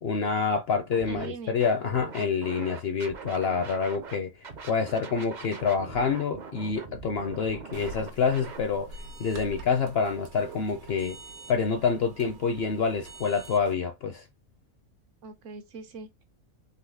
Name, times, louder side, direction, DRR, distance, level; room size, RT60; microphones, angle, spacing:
voice 1, 0.0-4.3 4.6-11.2 11.5-14.2, left 5 dB, 60° left, 0.7 m, -27 dB
Scratching (performance technique), 0.9-1.3 1.6-4.2 4.4-8.6, right 5 dB, 45° right, 0.6 m, -42 dB
voice 2, 1.0-1.6 15.2-16.2, right 4 dB, 65° right, 1.0 m, -42 dB
sound 1, 7.7-13.7, right 2 dB, 85° right, 1.4 m, -45 dB
3.9 x 3.0 x 3.5 m
omnidirectional pair, 1.5 m